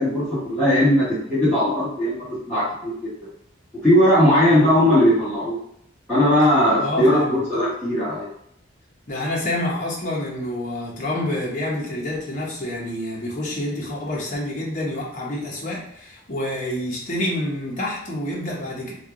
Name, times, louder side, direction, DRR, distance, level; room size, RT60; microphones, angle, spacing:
voice 1, 0.0-3.1 3.8-5.6 6.1-8.3, equal, 5° left, -14 dB, 1.2 m, -18 dB
voice 2, 6.8-7.4 9.1-18.9, left 1 dB, 40° left, -4 dB, 0.9 m, -28 dB
3.3 x 2.2 x 3.7 m, 0.71 s
head